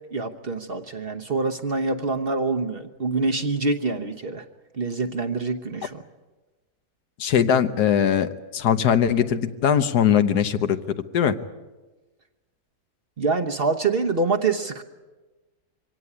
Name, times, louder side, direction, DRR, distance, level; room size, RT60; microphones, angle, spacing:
voice 1, 0.1-4.4 4.8-6.0 13.2-14.8, right 3 dB, 40° right, 6 dB, 1.1 m, -25 dB
voice 2, 7.2-10.8 11.1-11.4, left 8 dB, 75° left, 10 dB, 1.5 m, -20 dB
24.0 x 17.5 x 9.8 m, 1.2 s
omnidirectional pair, 1.7 m